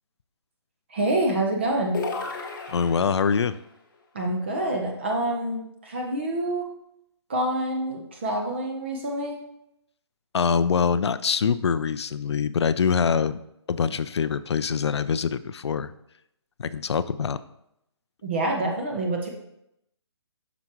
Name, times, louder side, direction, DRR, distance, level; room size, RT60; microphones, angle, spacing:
voice 1, 0.9-2.0 4.1-6.7 7.3-9.4 18.2-19.3, right 1 dB, 25° right, 1 dB, 0.7 m, -27 dB
sound 1, 1.9-3.5, left 4 dB, 45° left, 0.9 m, -33 dB
voice 2, 2.7-3.6 10.3-13.4 13.7-15.9 16.6-17.4, left 6 dB, 65° left, 15 dB, 0.4 m, -24 dB
7.8 x 6.0 x 3.0 m, 0.80 s
hypercardioid pair, 175°, 15 cm